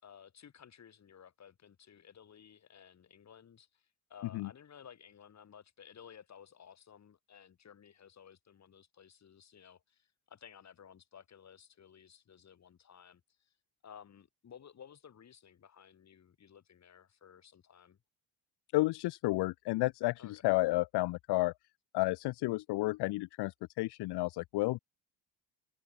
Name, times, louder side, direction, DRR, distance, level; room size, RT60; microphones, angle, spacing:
voice 1, 0.0-13.6 13.8-18.0 20.2-20.4, left 8 dB, 40° left, 5.6 m, -56 dB
voice 2, 18.7-21.5 21.9-24.8, left 20 dB, 70° left, 0.7 m, -31 dB
cardioid pair, 140°, 42 cm